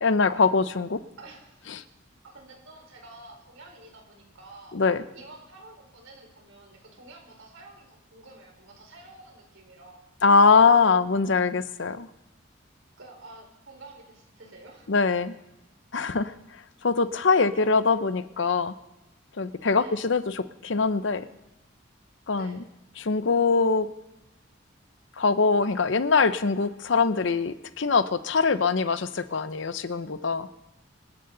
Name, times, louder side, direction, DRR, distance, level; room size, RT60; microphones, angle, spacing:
voice 1, 0.0-1.0 1.7-1.8 4.7-5.0 10.2-12.1 14.9-15.3 15.9-16.3 16.8-18.7 19.4-21.3 22.3-22.6 23.0-23.9 25.2-30.5, left 4 dB, 65° left, 13 dB, 0.7 m, -23 dB
voice 2, 1.2-1.8 2.2-4.8 5.1-10.0 13.0-14.9 19.7-20.0 22.3-22.6, right 2 dB, 80° right, 1 dB, 4.4 m, -49 dB
25.5 x 11.0 x 3.9 m, 0.92 s
head